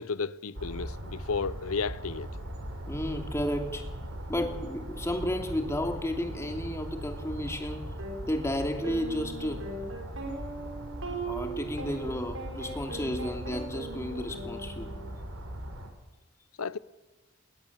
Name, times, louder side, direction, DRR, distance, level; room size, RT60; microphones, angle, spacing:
voice 1, 0.0-2.3 16.6-16.8, left 5 dB, 90° left, 0.8 m, -33 dB
sound 1, 0.5-15.9, right 1 dB, 90° right, 4.0 m, -40 dB
voice 2, 2.9-3.8 4.3-7.8 8.3-9.6 11.3-14.9, left 1 dB, 15° left, 2.7 m, -32 dB
sound 2, 8.0-8.2 8.8-15.2, right 2 dB, 75° right, 5.6 m, -39 dB
21.5 x 19.5 x 7.4 m
head